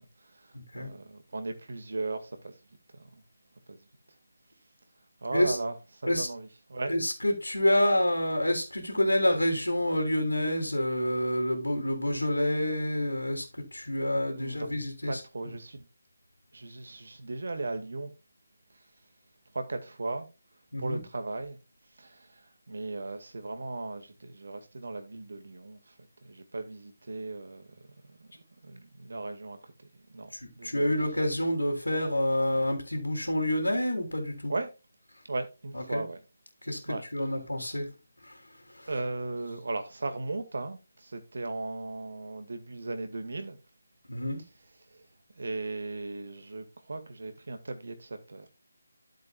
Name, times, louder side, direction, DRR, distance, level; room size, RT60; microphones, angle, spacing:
voice 1, 0.0-2.6 2.9-3.1 3.7-3.9 5.2-6.9 14.0-14.7 15.1-15.9 16.5-18.1 19.5-20.3 20.8-21.6 22.0-25.9 26.2-28.3 28.6-30.9 34.5-34.7 35.3-36.2 36.9-37.4 38.9-43.6 44.9-45.1 45.3-48.5, right 2 dB, 55° right, 2.0 m, -37 dB
voice 2, 6.9-13.4 13.7-15.2 20.7-21.0 30.4-34.5 35.7-36.0 36.6-37.9 38.2-38.4 38.7-38.9 44.1-44.4, left 1 dB, 80° left, 3.2 m, -28 dB
13.0 x 7.7 x 2.4 m
figure-of-eight pair, 155°, 0 cm